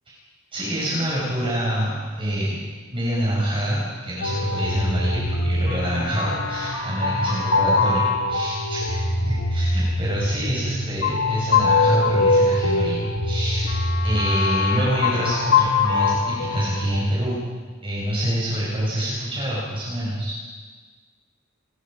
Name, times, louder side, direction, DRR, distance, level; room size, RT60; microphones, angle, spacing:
voice 1, 0.5-2.6 2.9-8.0 8.3-13.7 14.0-17.4 17.8-20.3, equal, 25° right, -6 dB, 6.2 m, -26 dB
sound 1, 4.2-17.1, left 3 dB, 85° left, 2.2 m, -23 dB
28.0 x 22.5 x 5.2 m, 1.5 s
head